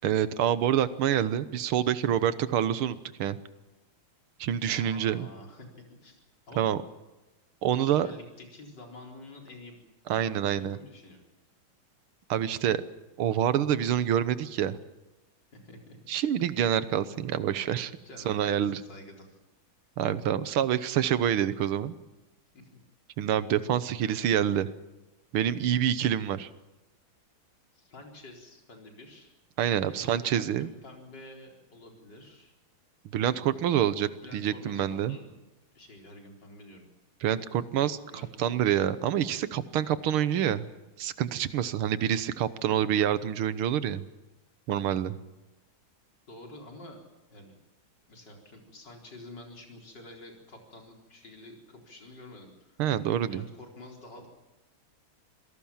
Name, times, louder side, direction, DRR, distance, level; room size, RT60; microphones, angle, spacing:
voice 1, 0.0-3.4 4.4-5.3 6.6-6.8 7.6-8.1 10.1-10.8 12.3-12.8 13.2-14.8 16.1-17.9 18.3-18.8 20.0-21.9 23.2-24.7 25.3-26.5 29.6-30.7 33.1-35.2 37.2-38.0 38.4-40.7 41.0-44.0 44.7-45.1 52.8-53.4, right 10 dB, 80° right, 14 dB, 1.9 m, -27 dB
voice 2, 4.7-5.7 6.0-6.7 7.8-9.8 10.2-11.2 15.5-16.0 18.0-19.4 22.5-22.7 27.7-29.3 29.9-32.5 34.2-35.4 35.7-36.9 38.1-38.8 46.3-47.0 47.3-47.5 48.1-52.8 53.3-54.3, left 1 dB, 55° left, 1 dB, 4.8 m, -48 dB
27.0 x 17.5 x 7.3 m, 1.1 s
omnidirectional pair, 2.3 m